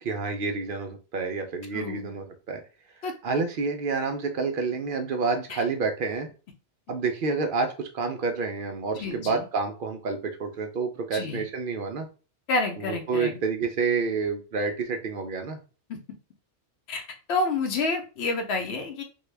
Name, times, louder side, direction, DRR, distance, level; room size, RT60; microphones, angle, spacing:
voice 1, 0.0-2.6 3.2-6.3 6.9-12.1 12.8-15.6, right 4 dB, 60° right, 5 dB, 0.7 m, -29 dB
voice 2, 1.7-2.1 3.0-3.1 5.5-5.6 9.0-9.4 11.1-11.4 12.5-13.4 15.9-16.0 16.9-17.0 17.3-19.0, left 3 dB, 90° left, 4 dB, 0.9 m, -29 dB
3.5 x 2.2 x 3.2 m, 0.34 s
omnidirectional pair, 1.1 m